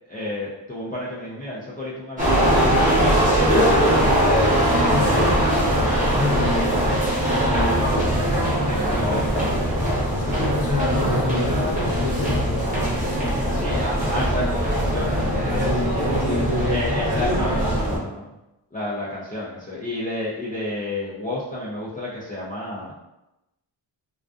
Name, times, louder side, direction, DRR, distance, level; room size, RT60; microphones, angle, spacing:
voice 1, 0.1-4.1 4.8-5.4 5.8-6.0 8.4-9.8 10.2-10.3 13.5-15.7 16.7-18.3 18.7-23.0, left 1 dB, 20° left, -8 dB, 0.4 m, -31 dB
sound 1, 2.2-18.0, equal, 20° right, 0.9 m, -21 dB
voice 2, 4.8-5.7 6.2-6.8 7.2-7.8 10.1-12.7 15.4-17.5, left 2 dB, 55° left, -3 dB, 0.7 m, -27 dB
2.4 x 2.3 x 2.3 m, 0.94 s
wide cardioid pair, 120°, 45 cm